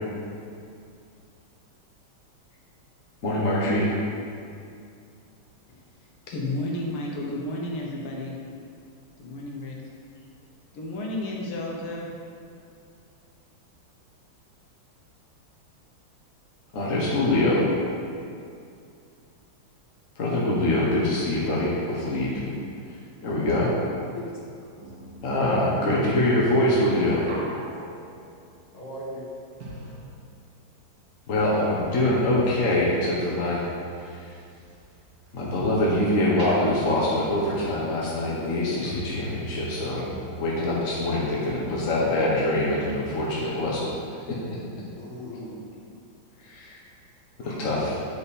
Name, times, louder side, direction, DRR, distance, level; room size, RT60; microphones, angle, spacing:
voice 1, 3.2-3.9 16.7-17.7 20.2-22.3 23.2-23.7 25.2-27.2 31.3-33.6 34.0-34.3 35.3-40.1 40.4-43.9 44.3-44.4 46.4-46.8 47.6-47.9, left 1 dB, 45° left, -6 dB, 1.2 m, -24 dB
voice 2, 6.3-8.4 9.2-9.8 10.7-12.1, left 1 dB, 80° left, -2 dB, 1.8 m, -32 dB
sound 1, 24.7-30.7 31.0-35.8 36.2-42.5 42.8-42.9, right 1 dB, 60° right, 2.1 m, -43 dB
voice 3, 25.6-26.1 28.7-29.2 44.9-45.6 47.4-47.7, left 1 dB, 20° left, -8 dB, 1.8 m, -37 dB
8.5 x 5.2 x 4.2 m, 2.4 s
omnidirectional pair, 2.3 m